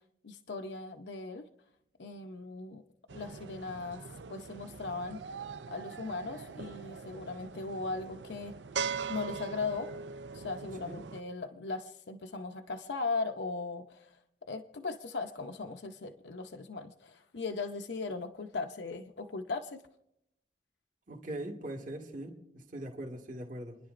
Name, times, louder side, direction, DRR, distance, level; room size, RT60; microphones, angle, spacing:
voice 1, 0.2-1.5 2.0-2.8 3.1-4.0 4.3-5.2 5.7-8.6 9.1-9.9 10.3-14.1 14.5-19.8, left 3 dB, 75° left, 5 dB, 0.7 m, -38 dB
sound 1, 3.1-11.2, right 5 dB, 85° right, 0.5 m, -41 dB
voice 2, 21.1-23.8, right 1 dB, 50° right, 0 dB, 1.7 m, -41 dB
30.0 x 10.5 x 2.5 m, 0.81 s
head